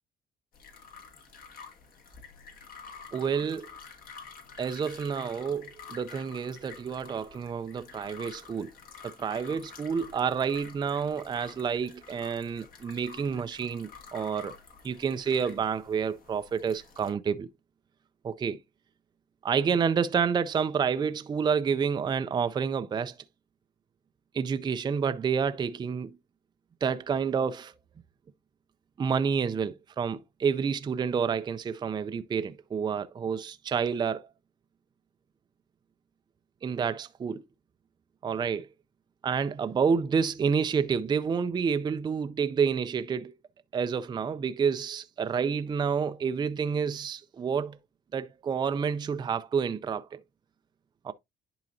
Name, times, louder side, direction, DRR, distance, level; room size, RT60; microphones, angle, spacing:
sound 1, 0.5-17.1, left 5 dB, 60° left, 2.1 m, -49 dB
voice 1, 3.1-3.7 4.6-8.7 9.0-14.6 14.8-17.5 18.2-18.6 19.4-23.1 24.3-26.2 26.8-27.7 29.0-34.3 36.6-37.4 38.2-38.7 39.2-43.3 43.7-47.8 48.1-50.2 51.0-51.1, right 6 dB, 25° right, 0.4 m, -29 dB
10.5 x 3.9 x 2.6 m
cardioid pair, 110°, 17 cm